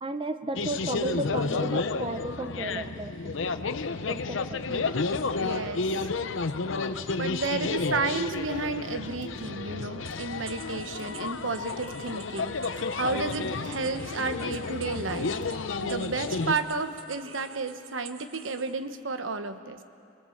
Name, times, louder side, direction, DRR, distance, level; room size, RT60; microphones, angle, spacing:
voice 1, 0.0-3.4 4.1-4.6, right 2 dB, 25° right, 10 dB, 0.8 m, -34 dB
sound 1, 0.6-16.5, left 4 dB, 70° left, 0.7 m, -31 dB
voice 2, 5.4-6.1 7.2-15.4 15.8-19.8, right 4 dB, 75° right, 9 dB, 1.1 m, -32 dB
sound 2, 7.2-16.7, left 1 dB, 40° left, 2.2 m, -56 dB
sound 3, 10.0-18.8, right 6 dB, 90° right, 1.4 m, -49 dB
26.0 x 20.5 x 7.2 m, 2.6 s
head